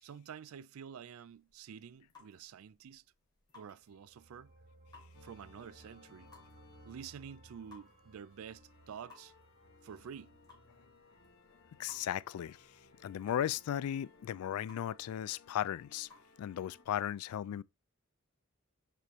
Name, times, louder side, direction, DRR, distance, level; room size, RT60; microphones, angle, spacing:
voice 1, 0.0-3.0 3.5-4.5 5.2-6.3 6.8-9.3 9.8-10.3, right 7 dB, 80° right, 0.4 m, -49 dB
sound 1, 1.3-16.2, left 4 dB, 20° left, 2.9 m, -64 dB
sound 2, 3.8-14.4 14.8-14.9, right 2 dB, 40° right, 0.9 m, -63 dB
sound 3, 5.1-16.9, left 4 dB, 70° left, 1.3 m, -63 dB
voice 2, 11.8-12.6 13.0-16.1 16.4-17.6, left 10 dB, 90° left, 0.3 m, -36 dB
6.7 x 5.2 x 3.0 m
head